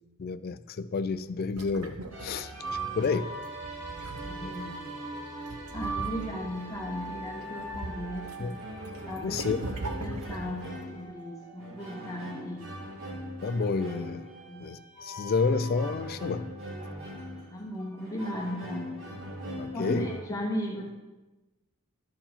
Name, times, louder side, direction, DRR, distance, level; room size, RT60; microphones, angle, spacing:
voice 1, 0.2-3.3 8.4-8.5 9.2-9.7 13.4-14.2 14.6-16.5 19.6-20.1, left 4 dB, 45° left, 14 dB, 0.3 m, -30 dB
sound 1, 1.2-3.1 3.5-4.6 5.5-6.6 7.1-8.4 8.6-10.7, right 2 dB, 80° right, 0.9 m, -40 dB
sound 2, 2.1-20.2, right 1 dB, 65° right, 2.6 m, -40 dB
voice 2, 4.2-4.9 5.7-8.6 9.1-12.7 14.4-14.7 17.5-18.9 19.7-20.9, equal, 15° left, -2 dB, 0.8 m, -37 dB
11.5 x 4.5 x 5.8 m, 1.1 s
head